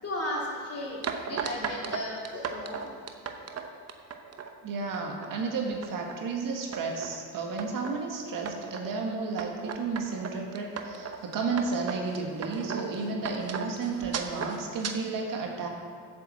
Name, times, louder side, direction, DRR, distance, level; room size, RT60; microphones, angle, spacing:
voice 1, 0.0-2.9, left 1 dB, 45° left, -4 dB, 3.1 m, -35 dB
sound 1, 1.0-4.5 4.9-5.3 5.7-6.2 6.7-7.2 7.6-8.0 8.5-8.9 9.4-14.9, right 6 dB, 45° right, 1.0 m, -36 dB
voice 2, 4.6-15.7, right 4 dB, 70° right, 1 dB, 1.7 m, -32 dB
7.8 x 7.1 x 7.4 m, 2.1 s
cardioid pair, 85°, 35 cm